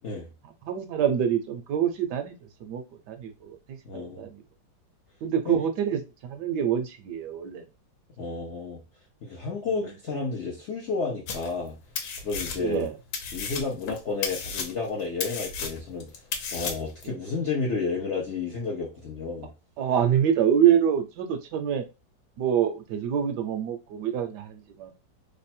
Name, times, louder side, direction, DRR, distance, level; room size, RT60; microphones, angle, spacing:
voice 1, 0.6-4.4 5.2-7.6 9.7-9.9 12.6-12.9 17.0-17.2 19.8-21.8 22.4-24.9, right 9 dB, 75° right, 7 dB, 1.1 m, -26 dB
voice 2, 3.8-4.3 5.5-5.6 8.2-8.8 9.2-11.8 12.2-12.9 13.3-19.5, left 4 dB, 65° left, -3 dB, 0.7 m, -31 dB
sound 1, 11.3-11.7 12.0-12.9 13.1-17.0, left 5 dB, 85° left, 1.4 m, -33 dB
3.2 x 2.1 x 4.2 m, 0.28 s
omnidirectional pair, 2.0 m